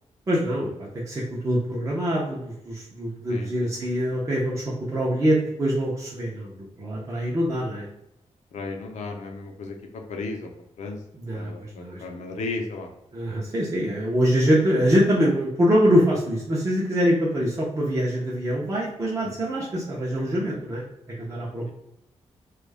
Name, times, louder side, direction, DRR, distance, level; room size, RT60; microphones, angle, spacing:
voice 1, 0.3-7.8 11.1-12.0 13.1-20.8 21.2-21.7, equal, 25° right, -5 dB, 0.5 m, -24 dB
voice 2, 3.3-3.7 8.5-9.7 10.1-10.5 10.8-11.0 11.3-12.9, left 3 dB, 80° left, 2 dB, 0.5 m, -34 dB
2.3 x 2.0 x 3.2 m, 0.83 s
wide cardioid pair, 135°, 12 cm